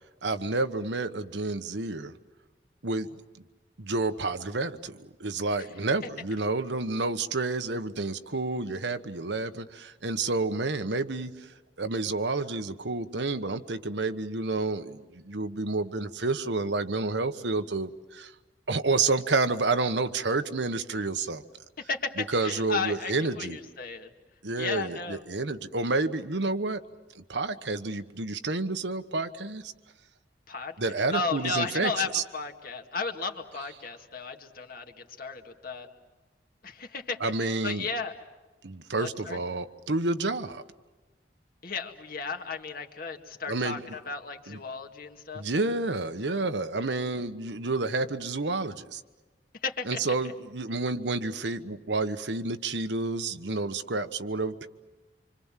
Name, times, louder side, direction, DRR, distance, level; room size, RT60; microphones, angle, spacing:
voice 1, 0.2-2.1 2.8-3.2 3.8-11.3 11.8-18.3 18.7-21.4 22.3-23.6 24.4-26.8 27.1-29.7 30.8-32.2 37.2-37.9 38.6-40.6 43.5-43.8 44.5-44.6 45.3-49.0 49.8-54.7, right 3 dB, 90° right, 9 dB, 1.2 m, -29 dB
voice 2, 21.8-24.1 24.6-25.2 30.5-30.8 31.1-35.9 36.6-38.2 39.0-39.4 41.6-45.4 49.6-50.0, left 4 dB, 55° left, 4 dB, 2.1 m, -34 dB
26.5 x 25.5 x 7.5 m, 1.2 s
head